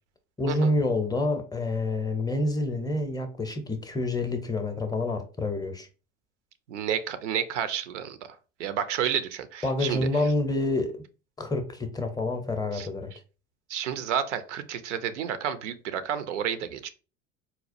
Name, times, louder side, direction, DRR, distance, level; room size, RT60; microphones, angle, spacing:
voice 1, 0.4-5.9 9.6-11.0 11.4-13.1, left 2 dB, 10° left, 0.5 m, -28 dB
voice 2, 6.7-8.2 8.6-10.0 12.7-12.9 13.7-16.9, right 8 dB, 80° right, 0.5 m, -30 dB
4.1 x 2.3 x 2.5 m
hypercardioid pair, 75°, 35 cm